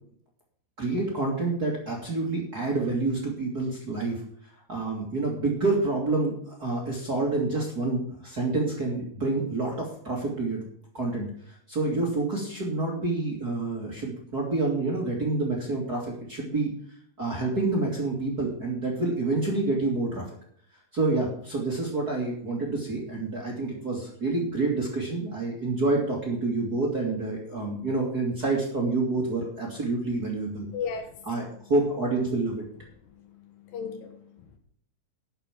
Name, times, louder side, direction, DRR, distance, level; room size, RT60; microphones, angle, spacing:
voice 1, 0.8-4.2 4.7-10.7 10.9-16.7 17.2-20.2 20.9-30.7 31.3-31.4 31.7-32.6, right 3 dB, 30° right, 1.9 m, -28 dB
voice 2, 30.7-31.2 33.3-34.6, left 6 dB, 70° left, 3.0 m, -36 dB
11.0 x 6.8 x 7.4 m
omnidirectional pair, 4.5 m